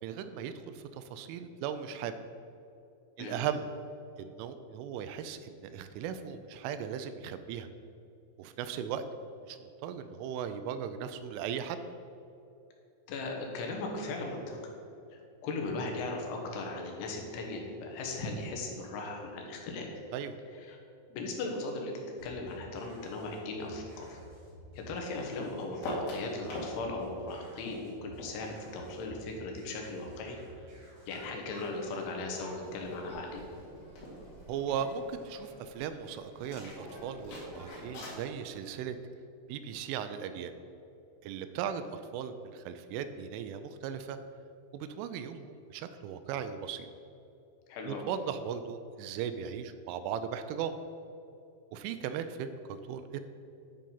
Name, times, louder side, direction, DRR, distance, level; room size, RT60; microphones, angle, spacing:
voice 1, 0.0-2.2 3.2-3.6 4.2-7.7 8.4-9.0 9.4-11.8 20.1-20.4 34.5-39.0 39.5-40.5 41.2-44.2 44.7-46.9 47.8-50.8 51.7-53.2, right 8 dB, 85° right, 10 dB, 3.0 m, -37 dB
voice 2, 13.1-14.6 15.4-19.9 20.7-20.8 21.1-21.9 22.2-24.2 24.7-30.4 31.1-33.4 47.7-48.1, left 3 dB, 75° left, 1 dB, 3.4 m, -38 dB
sound 1, 22.2-31.2, equal, 45° right, 1.9 m, -54 dB
sound 2, 25.8-26.7 27.0-29.8 30.2-32.7 33.0-33.1 33.3-33.6 33.9-34.9 36.4-38.2, left 1 dB, 55° left, 3.5 m, -43 dB
sound 3, 31.1-38.3, equal, 70° right, 0.7 m, -51 dB
10.0 x 5.2 x 5.5 m, 2.8 s
omnidirectional pair, 5.6 m